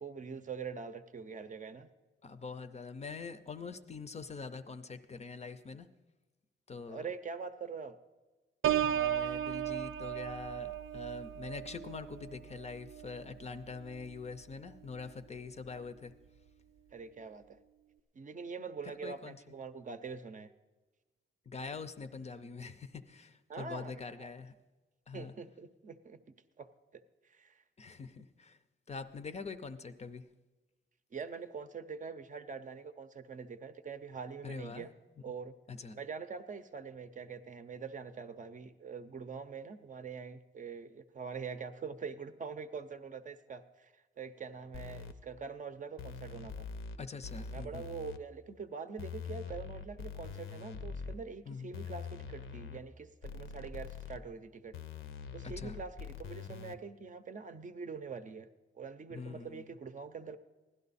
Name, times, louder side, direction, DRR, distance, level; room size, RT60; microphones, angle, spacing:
voice 1, 0.0-1.9 6.9-8.0 15.8-15.9 16.9-17.6 18.1-20.5 23.5-24.3 25.1-26.2 26.6-26.7 26.9-27.0 27.3-27.6 31.1-34.9 35.2-35.5 35.9-46.7 47.5-54.7 55.3-58.5 58.8-60.4, right 5 dB, 40° right, 9 dB, 0.6 m, -44 dB
voice 2, 2.2-5.9 6.7-7.1 8.8-16.1 18.8-19.4 21.5-24.5 25.1-25.3 27.8-28.6 28.9-30.3 34.4-34.9 35.7-36.0 47.0-47.9 51.5-51.7 55.4-55.8 59.1-59.6, left 4 dB, 35° left, 10 dB, 0.5 m, -44 dB
Piano, 8.6-14.3 14.7-15.1, right 11 dB, 85° right, 0.7 m, -36 dB
sound 1, 44.7-45.1 46.0-47.0 47.2-48.2 49.0-51.2 51.7-52.8 53.2-54.2 54.7-56.8, left 6 dB, 80° left, 0.8 m, -43 dB
16.5 x 11.5 x 4.1 m, 1.2 s
wide cardioid pair, 175°, 20 cm